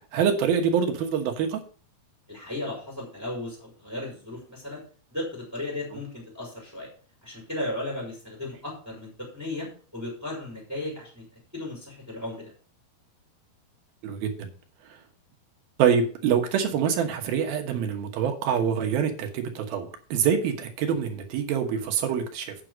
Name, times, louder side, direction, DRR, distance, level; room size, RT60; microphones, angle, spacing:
voice 1, 0.1-1.6 14.0-14.5 15.8-22.5, right 7 dB, 75° right, 4 dB, 3.0 m, -25 dB
voice 2, 2.3-4.8 5.1-6.9 7.2-9.7 9.9-11.2 11.5-12.5, left 1 dB, 5° right, -3 dB, 4.2 m, -35 dB
9.0 x 6.6 x 6.1 m, 0.42 s
omnidirectional pair, 4.4 m